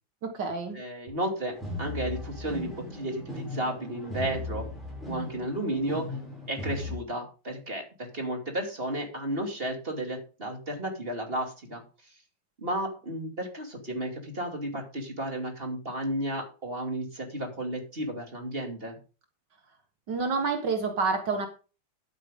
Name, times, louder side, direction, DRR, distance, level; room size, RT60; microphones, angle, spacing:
voice 1, 0.2-0.8 20.1-21.5, right 4 dB, 70° right, 5 dB, 2.1 m, -28 dB
voice 2, 0.7-4.7 5.1-6.1 6.5-11.8 12.6-19.0, right 1 dB, 30° right, 3 dB, 2.8 m, -33 dB
sound 1, 1.5-7.0, left 2 dB, ahead, 6.5 m, -37 dB
11.5 x 9.1 x 3.7 m, 0.35 s
omnidirectional pair, 2.0 m